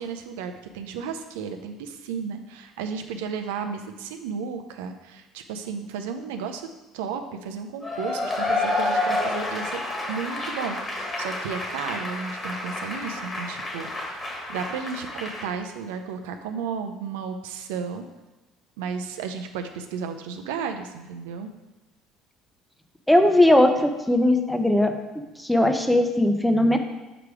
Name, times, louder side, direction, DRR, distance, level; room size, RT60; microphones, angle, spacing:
voice 1, 0.0-6.7 6.9-9.8 10.1-10.8 11.2-14.2 14.5-18.0 18.8-21.5, right 6 dB, 90° right, 6 dB, 0.5 m, -33 dB
Cheering / Applause / Crowd, 7.8-15.5, left 2 dB, 25° left, 1.5 m, -29 dB
voice 2, 23.1-24.9 25.4-26.8, left 1 dB, 5° left, 6 dB, 0.7 m, -19 dB
4.9 x 4.8 x 4.8 m, 1.1 s
supercardioid pair, 85°, 0 cm